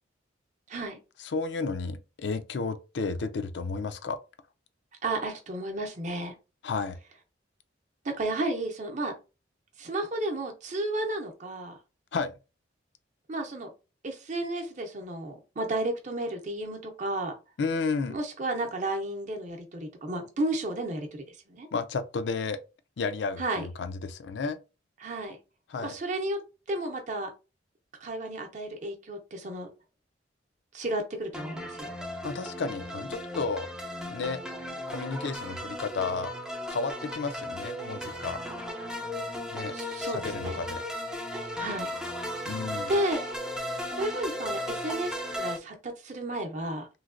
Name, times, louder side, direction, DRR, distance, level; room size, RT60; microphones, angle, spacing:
voice 1, 0.7-1.0 5.0-6.3 8.0-9.1 9.8-11.8 13.3-13.7 14.0-17.3 18.1-21.7 23.4-23.7 25.0-25.4 25.8-26.4 26.7-27.3 28.0-29.7 30.7-31.9 39.7-40.6 41.6-41.9 42.4-42.6 42.9-43.2 43.9-46.9, right 1 dB, 40° right, 0.7 m, -32 dB
voice 2, 1.2-4.2 6.6-7.0 12.1-12.3 17.6-18.2 21.7-22.6 23.0-24.6 25.7-26.0 32.2-33.7 34.1-34.4 34.9-36.3 36.7-38.4 39.5-40.8 42.5-42.9, left 4 dB, 65° left, 0.4 m, -32 dB
sound 1, 31.3-45.6, left 1 dB, 5° right, 0.3 m, -36 dB
3.1 x 2.7 x 2.5 m
head